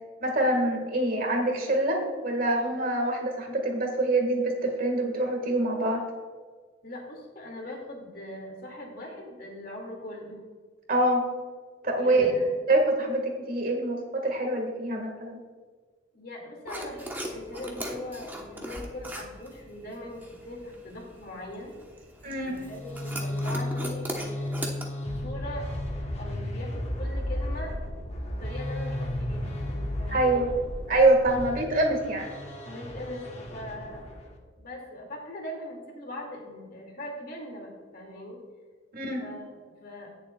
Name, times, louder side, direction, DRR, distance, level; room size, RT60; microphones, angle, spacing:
voice 1, 0.2-6.0 10.9-11.2 11.8-12.4 12.7-15.4 22.2-22.6 30.1-30.5 30.9-32.3 38.9-39.2, right 2 dB, 50° right, 2 dB, 1.8 m, -25 dB
voice 2, 6.8-10.4 11.9-12.5 16.1-21.7 22.4-24.6 25.0-25.7 26.2-27.8 28.2-30.5 32.6-34.2 34.6-38.4 39.2-40.1, left 1 dB, 50° left, 0 dB, 2.3 m, -40 dB
sound 1, 16.7-24.9, right 1 dB, 10° right, 1.0 m, -40 dB
sound 2, 22.5-34.4, left 1 dB, 35° left, 1.2 m, -34 dB
17.0 x 7.0 x 2.3 m, 1.5 s
head